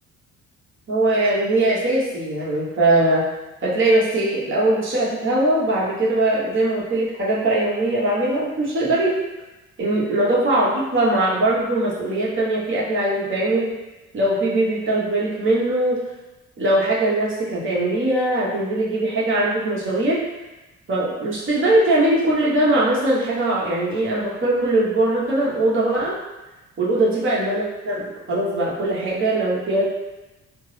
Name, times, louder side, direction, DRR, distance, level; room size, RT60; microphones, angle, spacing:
voice 1, 0.9-3.3 3.6-9.1 9.8-13.7 14.1-16.0 16.6-20.2 20.9-26.1 26.8-29.8, right 1 dB, 40° right, -6 dB, 1.1 m, -21 dB
3.4 x 2.0 x 3.2 m, 1.1 s
cardioid pair, 90°, 30 cm